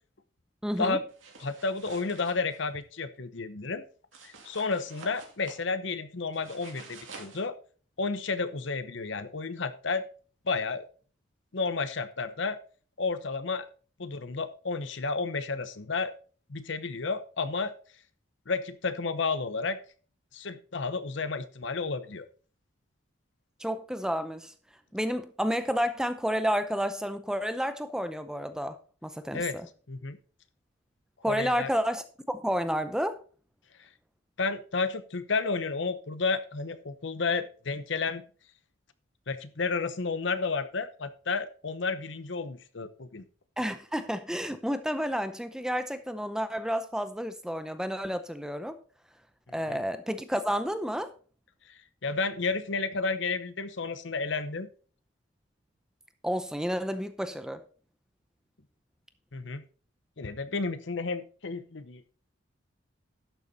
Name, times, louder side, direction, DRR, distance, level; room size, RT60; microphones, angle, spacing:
voice 1, 0.6-1.0 23.6-24.5 24.9-28.8 29.0-29.4 31.2-33.2 43.6-48.8 49.5-51.1 56.2-57.6, equal, 5° right, 10 dB, 0.6 m, -30 dB
sound 1, 1.1-2.6 4.1-5.6 6.3-7.4, right 4 dB, 75° right, 2.7 m, -48 dB
voice 2, 1.4-3.8 4.2-7.6 8.0-10.0 10.4-10.8 11.5-12.6 13.0-13.7 14.0-16.1 16.5-17.7 18.5-19.8 20.3-22.3 29.3-29.5 29.9-30.2 31.3-31.7 33.8-33.9 34.4-38.2 39.3-43.2 49.7-49.8 51.7-54.7 59.3-59.6 60.2-62.0, left 4 dB, 65° left, 13 dB, 0.8 m, -31 dB
11.5 x 6.9 x 4.1 m, 0.40 s
head